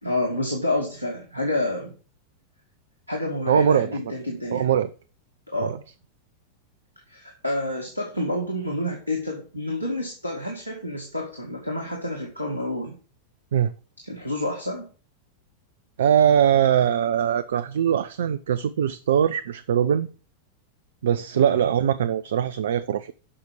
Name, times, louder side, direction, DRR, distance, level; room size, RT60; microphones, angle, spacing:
voice 1, 0.0-1.9 3.1-4.7 5.5-5.7 7.1-13.0 14.0-14.9 21.3-21.7, left 1 dB, 85° right, 1 dB, 2.2 m, -29 dB
voice 2, 3.5-3.9 4.5-4.9 5.6-5.8 13.5-13.7 16.0-20.1 21.0-23.1, right 9 dB, 60° right, 14 dB, 0.5 m, -21 dB
8.6 x 5.9 x 6.8 m, 0.37 s
figure-of-eight pair, 90°, 0 cm